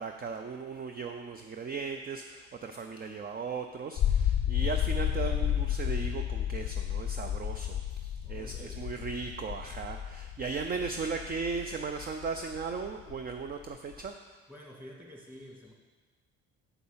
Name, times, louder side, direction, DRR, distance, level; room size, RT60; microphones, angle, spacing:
voice 1, 0.0-14.2, right 5 dB, 30° right, 5 dB, 0.6 m, -37 dB
sound 1, 4.0-14.1, left 10 dB, 50° left, 0.5 m, -32 dB
voice 2, 8.2-9.1 14.5-15.7, equal, 5° right, -1 dB, 1.8 m, -50 dB
6.8 x 6.0 x 5.6 m, 1.3 s
supercardioid pair, 70°, 29 cm